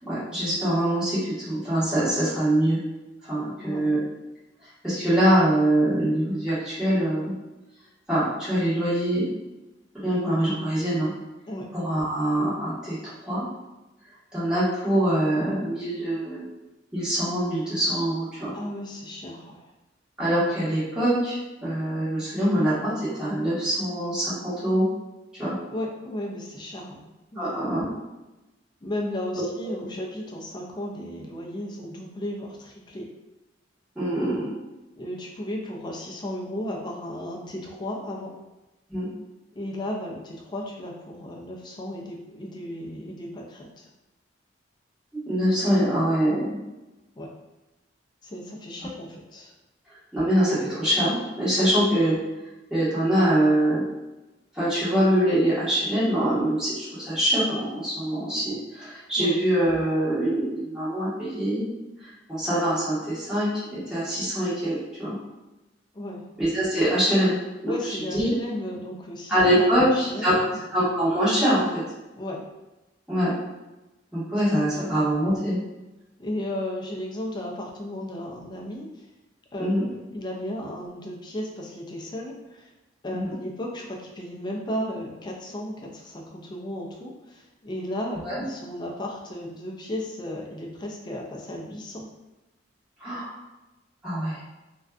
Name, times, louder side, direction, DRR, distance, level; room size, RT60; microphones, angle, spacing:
voice 1, 0.1-2.8 3.2-4.0 4.8-7.3 8.1-9.3 10.0-11.1 11.7-13.0 13.2-13.5 14.3-16.4 16.9-18.5 20.2-24.9 25.3-25.5 27.4-27.8 33.9-34.5 38.9-39.1 45.3-46.6 50.1-52.1 52.7-53.8 54.5-61.7 62.0-65.1 66.4-67.4 67.6-68.3 69.3-70.3 70.7-71.8 73.1-73.3 74.1-75.6 79.6-79.8 83.1-83.4 88.2-88.4 93.0-93.3 94.0-94.4, right 1 dB, 5° right, -13 dB, 1.2 m, -24 dB
voice 2, 18.5-19.6 25.7-27.0 27.3-27.5 28.8-33.1 35.0-38.4 39.5-43.9 47.2-47.3 48.2-49.5 59.2-59.3 65.9-66.3 67.7-70.6 72.1-72.4 74.5-74.6 76.2-79.0 79.5-82.7 83.0-92.1, left 1 dB, 25° left, -1 dB, 0.4 m, -34 dB
2.5 x 2.2 x 2.3 m, 1.0 s
head